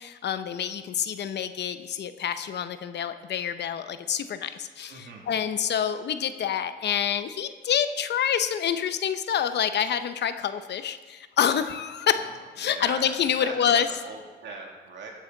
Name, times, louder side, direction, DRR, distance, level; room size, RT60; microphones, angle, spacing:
voice 1, 0.0-12.3 12.6-13.9, left 8 dB, 60° left, 11 dB, 0.8 m, -27 dB
voice 2, 4.9-5.3 12.1-13.0 13.4-15.1, right 3 dB, 65° right, 0 dB, 2.5 m, -41 dB
14.0 x 9.7 x 4.0 m, 1.4 s
cardioid pair, 90°, 20 cm